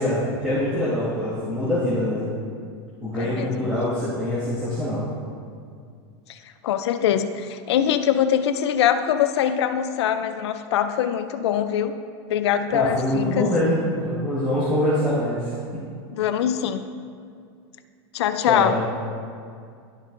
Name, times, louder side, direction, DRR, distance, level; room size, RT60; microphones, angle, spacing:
voice 1, 0.0-2.3 3.0-5.1 12.7-15.8 18.5-18.9, left 1 dB, 5° right, -13 dB, 1.8 m, -24 dB
voice 2, 3.1-3.5 6.3-6.4 6.6-11.9 12.3-13.5 16.1-16.8 18.1-18.8, left 9 dB, 80° left, 9 dB, 0.5 m, -23 dB
13.0 x 5.3 x 2.6 m, 2.3 s
supercardioid pair, 160°, 14 cm